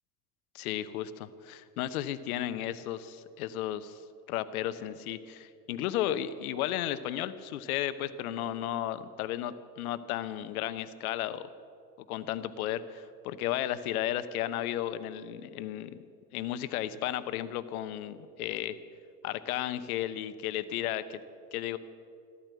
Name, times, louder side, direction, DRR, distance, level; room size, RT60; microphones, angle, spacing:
voice 1, 0.5-4.0 4.3-11.5 12.1-15.9 16.3-18.8 19.2-21.2 21.5-21.8, left 12 dB, 60° left, 14 dB, 1.0 m, -34 dB
14.0 x 13.5 x 7.7 m, 2.4 s
figure-of-eight pair, 75°, 49 cm